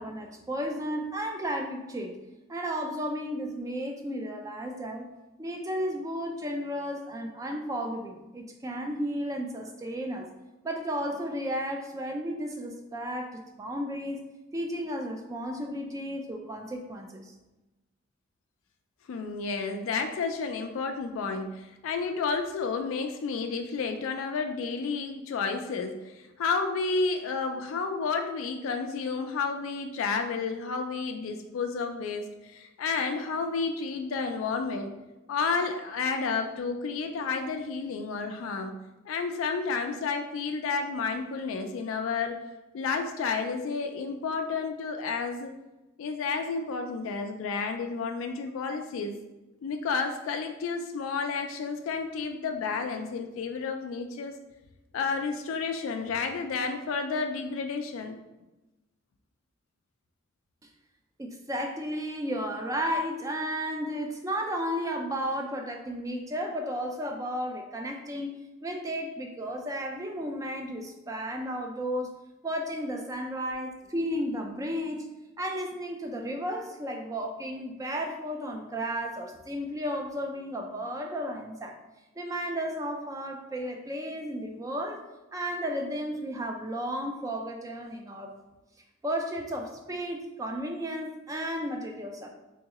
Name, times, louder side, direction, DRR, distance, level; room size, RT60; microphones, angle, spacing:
voice 1, 0.0-2.2 2.5-5.1 5.4-10.3 10.6-14.2 14.5-17.3 61.2-68.3 68.6-72.1 72.4-75.1 75.4-81.7 82.2-85.0 85.3-88.3 89.0-92.3, equal, 15° right, 3 dB, 0.3 m, -33 dB
voice 2, 19.1-34.9 35.3-38.7 39.1-42.4 42.7-45.5 46.0-49.2 49.6-54.3 54.9-58.2, left 4 dB, 85° left, 5 dB, 0.3 m, -31 dB
3.6 x 3.1 x 2.9 m, 1.0 s
head